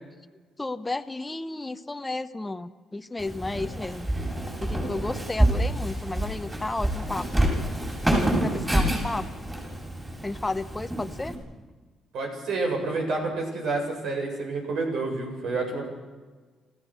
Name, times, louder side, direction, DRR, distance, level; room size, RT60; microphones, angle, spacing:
voice 1, 0.6-4.1 4.6-7.4 8.4-9.3 10.2-11.3, left 2 dB, 15° left, 8 dB, 0.9 m, -32 dB
Walk footsteps, 3.2-11.3, right 1 dB, 15° right, 7.2 m, -27 dB
voice 2, 12.1-15.9, right 3 dB, 70° right, 2 dB, 7.5 m, -29 dB
28.0 x 15.5 x 6.4 m, 1.4 s
cardioid pair, 105°, 0 cm